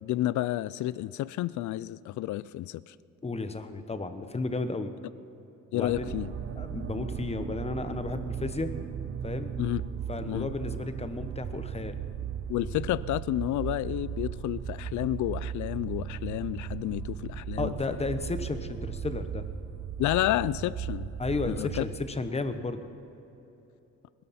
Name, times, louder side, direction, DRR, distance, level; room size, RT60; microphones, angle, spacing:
voice 1, 0.0-2.9 5.7-6.3 9.6-9.8 10.3-10.5 12.5-17.7 20.0-21.1 21.5-21.8, left 15 dB, 75° left, 19 dB, 0.5 m, -30 dB
voice 2, 3.2-4.9 5.7-6.1 6.6-8.7 9.2-9.5 10.1-12.0 17.6-19.4 21.2-22.9, left 3 dB, 20° left, 9 dB, 1.1 m, -33 dB
sound 1, 5.9-22.1, right 8 dB, 45° right, 0.9 m, -37 dB
21.0 x 13.0 x 4.3 m, 3.0 s
cardioid pair, 90°, 30 cm